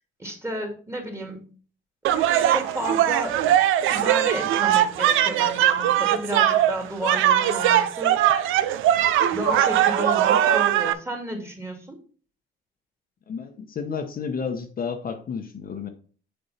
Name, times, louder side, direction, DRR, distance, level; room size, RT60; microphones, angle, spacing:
voice 1, 0.2-1.5 2.5-3.4 3.9-8.2 9.3-12.0, right 1 dB, 15° right, 2 dB, 2.2 m, -32 dB
sound 1, 2.0-10.9, right 11 dB, 90° right, 0.5 m, -20 dB
voice 2, 13.3-15.9, left 6 dB, 45° left, 5 dB, 0.8 m, -31 dB
6.7 x 4.5 x 4.1 m, 0.42 s
cardioid pair, 90°, 20 cm